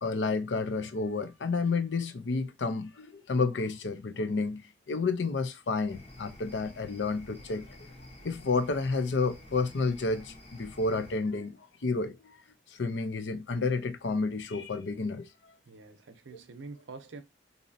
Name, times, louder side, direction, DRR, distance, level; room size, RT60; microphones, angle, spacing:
voice 1, 0.0-7.8 8.2-12.4 12.7-15.5, left 3 dB, 70° left, 0.5 m, -30 dB
sound 1, 5.9-11.2, left 1 dB, 35° left, 0.9 m, -50 dB
voice 2, 15.7-17.2, right 3 dB, 85° right, 0.6 m, -46 dB
4.1 x 2.7 x 2.6 m
head